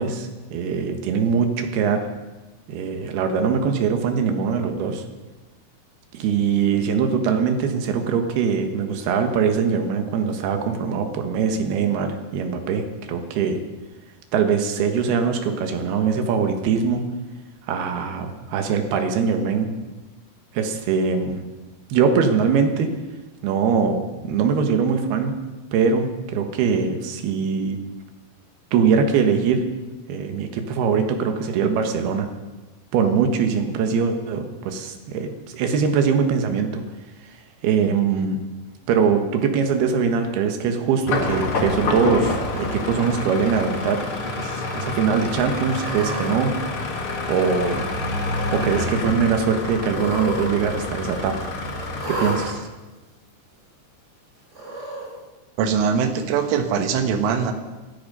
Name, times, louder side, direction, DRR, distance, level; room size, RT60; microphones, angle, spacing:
voice 1, 0.0-2.1 2.7-5.0 6.1-13.6 14.3-17.0 17.7-19.7 20.5-21.4 21.9-22.9 23.4-25.4 25.7-27.8 28.7-29.6 30.1-32.3 32.9-36.8 37.6-38.4 38.9-44.1 44.3-46.5 47.3-47.8 48.5-51.5 52.1-52.7, right 6 dB, 65° right, 5 dB, 2.9 m, -22 dB
sound 1, 41.1-52.5, left 2 dB, 60° left, 1.4 m, -28 dB
Cat, 42.2-42.8 43.5-44.0 44.3-44.4 45.5-46.3 47.2-47.9 48.2-48.7 49.8-50.5 50.7-50.8 52.0-52.4 53.3-53.4 54.5-55.1, right 2 dB, 15° right, 3.7 m, -33 dB
voice 2, 55.6-57.5, right 6 dB, 90° right, 6 dB, 3.8 m, -22 dB
18.5 x 13.0 x 5.5 m, 1.2 s
omnidirectional pair, 5.5 m